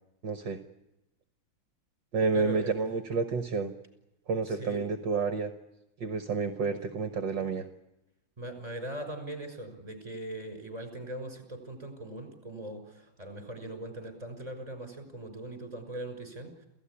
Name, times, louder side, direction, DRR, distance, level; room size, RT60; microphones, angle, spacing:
voice 1, 0.2-0.6 2.1-3.7 4.3-5.5 6.0-7.7, right 4 dB, 60° right, 8 dB, 1.9 m, -30 dB
voice 2, 2.3-2.7 4.6-4.8 8.4-16.5, right 1 dB, 15° right, 7 dB, 6.0 m, -40 dB
28.0 x 16.5 x 10.0 m, 0.96 s
omnidirectional pair, 2.3 m